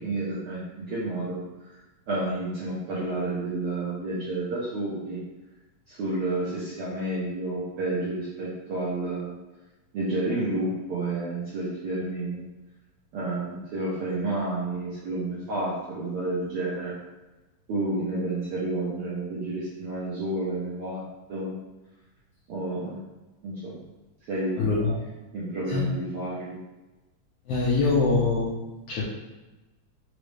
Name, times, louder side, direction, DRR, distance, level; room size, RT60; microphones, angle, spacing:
voice 1, 0.0-1.4 1.7-1.8 2.1-5.2 5.9-9.3 9.9-12.4 13.1-16.9 17.7-21.0 21.3-21.6 22.5-23.0 23.4-23.7 24.3-24.7 25.3-26.6, right 2 dB, 75° right, -8 dB, 1.3 m, -30 dB
voice 2, 24.6-25.0 25.7-25.9 27.4-28.5 28.9-29.0, left 3 dB, 80° left, -6 dB, 1.4 m, -23 dB
5.0 x 2.1 x 3.1 m, 1.1 s
omnidirectional pair, 3.4 m